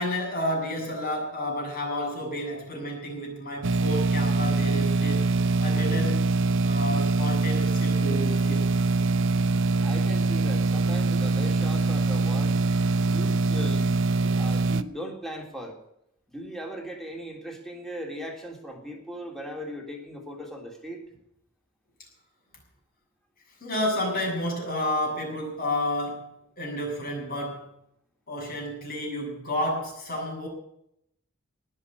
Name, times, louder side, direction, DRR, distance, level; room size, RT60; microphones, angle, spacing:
voice 1, 0.0-6.2 6.6-8.7 23.6-27.7 28.3-30.5, left 1 dB, 45° left, -1 dB, 7.3 m, -31 dB
sound 1, 3.6-14.8, right 3 dB, 60° right, 0.7 m, -23 dB
voice 2, 9.8-12.6 13.1-14.0 14.2-15.8 16.3-21.0, equal, ahead, 1 dB, 3.4 m, -38 dB
19.0 x 6.7 x 9.9 m, 0.75 s
head